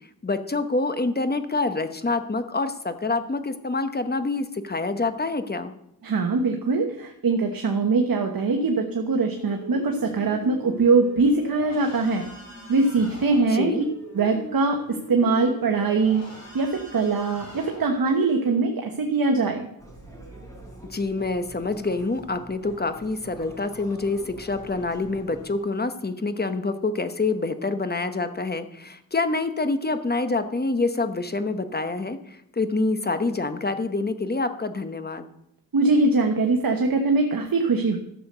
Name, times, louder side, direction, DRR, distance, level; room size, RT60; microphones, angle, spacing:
voice 1, 0.2-5.7 13.5-13.9 20.8-35.3, left 3 dB, 25° left, 9 dB, 1.0 m, -26 dB
voice 2, 6.0-12.3 12.7-13.8 14.1-16.2 16.5-19.7 35.7-38.0, right 3 dB, 75° right, 3 dB, 1.2 m, -22 dB
sound 1, 9.4-18.6, left 1 dB, 45° left, 4.2 m, -41 dB
sound 2, 19.8-25.5, right 1 dB, 10° left, 4.2 m, -45 dB
13.5 x 6.8 x 6.7 m, 0.78 s
wide cardioid pair, 105°, 36 cm